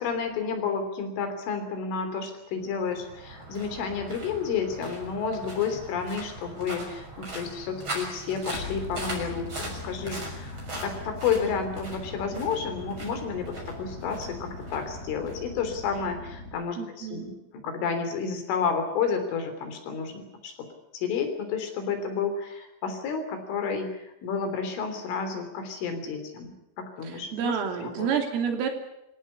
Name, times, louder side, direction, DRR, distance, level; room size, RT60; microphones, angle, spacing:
voice 1, 0.0-20.5 20.9-28.1, left 6 dB, 70° left, 7 dB, 5.8 m, -31 dB
sound 1, 2.6-16.0, right 2 dB, 25° right, 6.9 m, -40 dB
sound 2, 8.5-16.5, left 3 dB, 55° left, 4.8 m, -41 dB
voice 2, 16.8-17.3 27.0-28.7, right 7 dB, 80° right, 4 dB, 5.6 m, -29 dB
26.0 x 17.0 x 9.9 m, 0.88 s
omnidirectional pair, 5.8 m